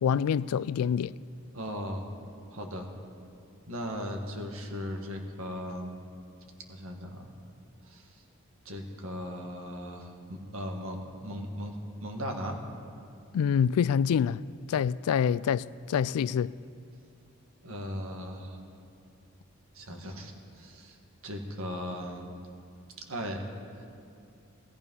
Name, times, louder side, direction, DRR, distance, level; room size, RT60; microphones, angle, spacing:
voice 1, 0.0-1.1 13.3-14.4 14.7-16.5, left 7 dB, 85° left, 0.3 m, -26 dB
voice 2, 1.5-2.1 2.5-2.9 3.7-6.0 6.7-7.4 7.9-8.1 8.7-12.6 17.6-18.6 19.7-21.0 21.2-22.3 23.1-23.5 23.8-23.9, equal, 70° right, 1.8 m, -37 dB
17.5 x 14.0 x 5.5 m
head